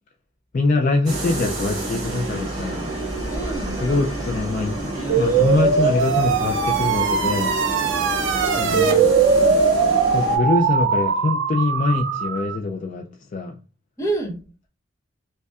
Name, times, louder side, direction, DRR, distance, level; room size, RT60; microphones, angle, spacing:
voice 1, 0.5-2.9 3.7-7.6 8.6-9.0 10.1-13.6, left 3 dB, 40° left, 0.3 m, -24 dB
sound 1, 1.0-10.4, right 2 dB, 20° right, 1.6 m, -29 dB
voice 2, 3.3-3.8 8.4-9.6 14.0-14.4, right 2 dB, 15° left, 0.8 m, -29 dB
sound 2, 5.1-12.6, right 5 dB, 65° right, 0.5 m, -20 dB
5.2 x 2.2 x 2.3 m
head